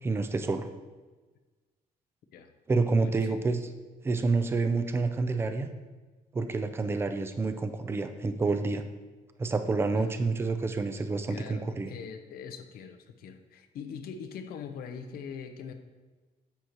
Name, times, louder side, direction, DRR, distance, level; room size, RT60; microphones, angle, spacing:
voice 1, 0.0-0.7 2.7-3.6 4.0-5.7 6.3-8.8 9.4-11.9, right 3 dB, 15° right, 8 dB, 0.5 m, -28 dB
voice 2, 3.0-3.4 9.9-10.1 11.3-15.7, left 6 dB, 85° left, 7 dB, 0.7 m, -42 dB
9.9 x 7.8 x 3.0 m, 1.3 s
cardioid pair, 175°, 15 cm